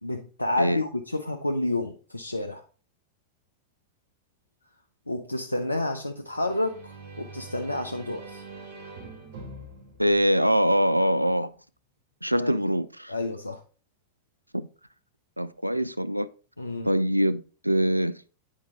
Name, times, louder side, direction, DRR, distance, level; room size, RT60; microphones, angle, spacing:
voice 1, 0.0-2.6 5.1-8.4 12.3-12.6 13.1-13.6 16.6-16.9, left 2 dB, 85° left, 0.5 m, -30 dB
sound 1, 6.3-11.0, right 3 dB, 60° right, 2.0 m, -44 dB
voice 2, 10.0-11.5 12.2-13.1 14.5-14.7 15.4-16.3 16.8-18.1, equal, 90° right, 0.3 m, -23 dB
8.7 x 4.6 x 3.7 m
figure-of-eight pair, 90°, 0 cm